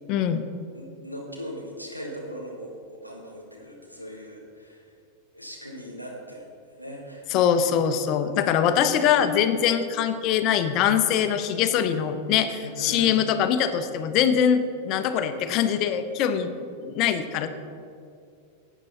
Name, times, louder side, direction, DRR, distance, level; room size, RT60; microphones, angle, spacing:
voice 1, 0.1-0.4 7.3-16.5 16.8-17.5, left 8 dB, 40° left, 10 dB, 0.7 m, -23 dB
voice 2, 0.7-4.9 5.3-6.5 6.8-7.3 8.2-8.8 12.6-13.2 15.2-15.4 16.1-16.3, equal, 90° right, -1 dB, 1.9 m, -40 dB
11.5 x 8.2 x 4.2 m, 2.4 s
figure-of-eight pair, 90°, 0 cm